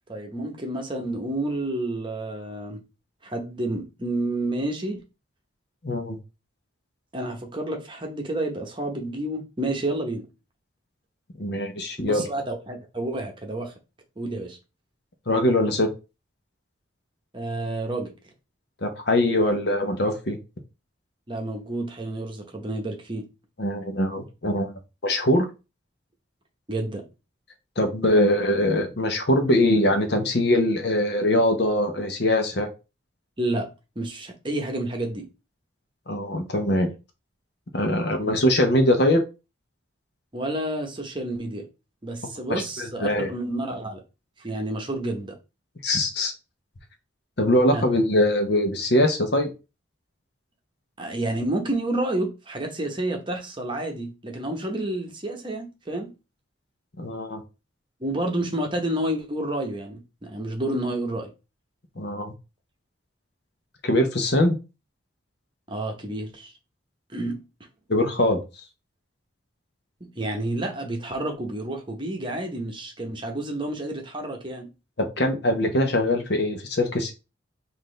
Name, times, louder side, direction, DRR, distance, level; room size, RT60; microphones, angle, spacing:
voice 1, 0.1-2.8 3.2-5.0 7.1-10.3 12.0-13.7 14.2-14.6 17.3-18.1 21.3-23.3 26.7-27.0 33.4-33.7 34.0-35.3 38.2-38.3 40.3-41.7 42.0-44.0 44.4-45.3 47.7-47.9 51.0-56.1 58.0-61.3 65.7-66.5 67.1-67.4 70.0-74.7, right 1 dB, 25° right, 0.9 m, -30 dB
voice 2, 5.8-6.2 11.4-12.3 15.3-15.9 18.8-20.4 23.6-24.7 25.0-25.5 27.8-32.7 36.1-36.9 37.7-39.2 42.2-43.3 45.8-46.3 47.4-49.5 57.0-57.4 62.0-62.3 63.8-64.5 67.9-68.4 75.0-77.1, left 1 dB, 55° left, 0.9 m, -22 dB
5.9 x 2.7 x 3.2 m
head